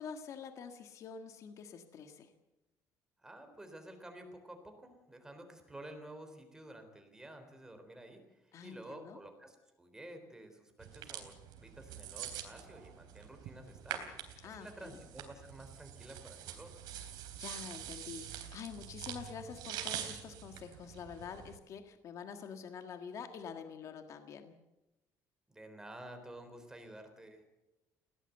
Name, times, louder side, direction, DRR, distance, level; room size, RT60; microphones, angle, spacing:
voice 1, 0.0-2.3 8.5-9.2 14.4-15.0 17.4-24.5, left 6 dB, 50° left, 7 dB, 1.7 m, -47 dB
voice 2, 3.2-11.4 11.6-14.1 14.4-16.8 25.5-27.4, right 1 dB, 10° right, 6 dB, 3.8 m, -51 dB
sound 1, 10.8-21.6, right 10 dB, 85° right, 3.6 m, -45 dB
20.5 x 17.0 x 8.0 m, 0.99 s
cardioid pair, 150°, 7 cm